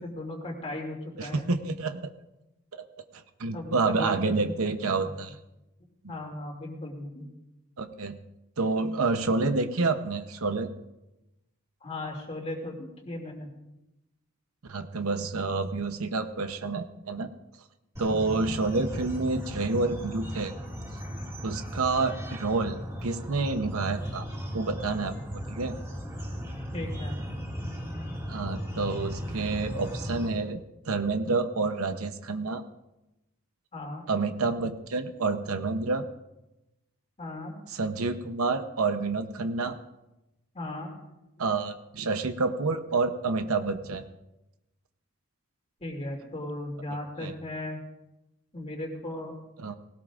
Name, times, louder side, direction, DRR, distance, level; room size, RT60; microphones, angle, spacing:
voice 1, 0.0-1.5 3.5-4.5 4.8-4.9 6.1-7.3 11.8-13.5 26.7-27.2 33.7-34.0 37.2-37.5 40.5-40.9 45.8-47.8 48.5-49.3, left 1 dB, 25° left, 1 dB, 2.6 m, -37 dB
voice 2, 1.2-2.1 3.1-5.4 7.8-8.2 8.6-10.7 14.7-17.3 18.0-20.5 21.4-24.3 24.5-25.1 25.5-25.7 28.3-32.6 34.1-36.1 37.7-39.8 41.4-44.0 47.2-47.3 49.6-49.8, right 3 dB, 75° right, 8 dB, 0.8 m, -28 dB
sound 1, 18.0-30.3, equal, 15° right, 2.2 m, -36 dB
19.0 x 17.5 x 2.5 m, 0.95 s
head